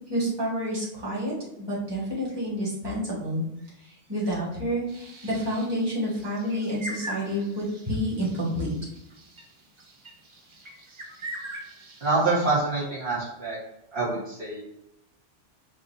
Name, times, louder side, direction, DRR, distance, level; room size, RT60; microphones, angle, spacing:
voice 1, 0.1-3.4 3.8-8.7, equal, 20° right, -7 dB, 1.6 m, -29 dB
sound 1, 4.9-12.5, right 1 dB, 35° right, 0.5 m, -42 dB
voice 2, 12.0-13.6 13.9-14.6, right 3 dB, 55° right, -7 dB, 1.6 m, -26 dB
7.0 x 2.6 x 2.7 m, 0.84 s
omnidirectional pair, 1.3 m